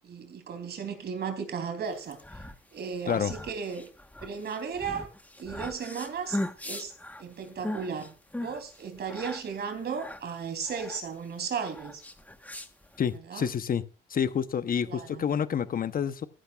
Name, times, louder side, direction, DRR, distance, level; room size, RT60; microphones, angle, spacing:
voice 1, 0.0-2.2 2.7-3.9 4.2-5.1 5.4-6.9 7.2-12.0 13.3-13.5 14.9-15.3, right 6 dB, 55° right, 3.3 m, -35 dB
sound 1, 2.0-13.2, left 1 dB, 10° left, 1.2 m, -39 dB
voice 2, 13.0-13.8 14.1-16.3, left 8 dB, 45° left, 0.9 m, -28 dB
15.0 x 11.5 x 2.4 m
cardioid pair, 90°, 20 cm